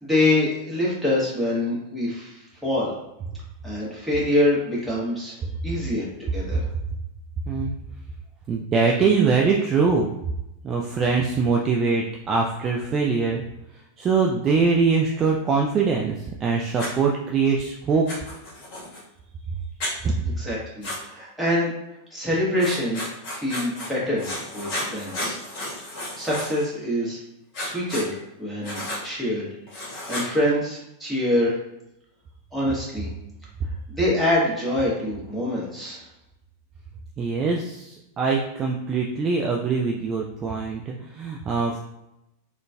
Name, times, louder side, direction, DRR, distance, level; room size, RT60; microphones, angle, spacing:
voice 1, 0.0-2.9 3.6-5.4 5.6-6.7 20.4-21.7 22.1-23.1 23.3-25.4 26.2-27.2 27.6-29.5 29.8-31.6 32.5-33.1 33.9-36.0, left 1 dB, ahead, -7 dB, 1.3 m, -25 dB
voice 2, 8.5-10.1 10.6-13.4 14.0-18.1 20.0-20.2 37.2-41.8, right 4 dB, 25° right, -1 dB, 0.3 m, -23 dB
Writing, 16.8-16.9 18.1-19.0 19.8-19.9 20.8-21.0 22.6-23.9 24.2-26.7 27.5-28.1 28.6-29.0 29.7-30.3, left 1 dB, 40° left, 1.2 m, -32 dB
3.7 x 2.4 x 2.2 m, 0.88 s
figure-of-eight pair, 90°, 0 cm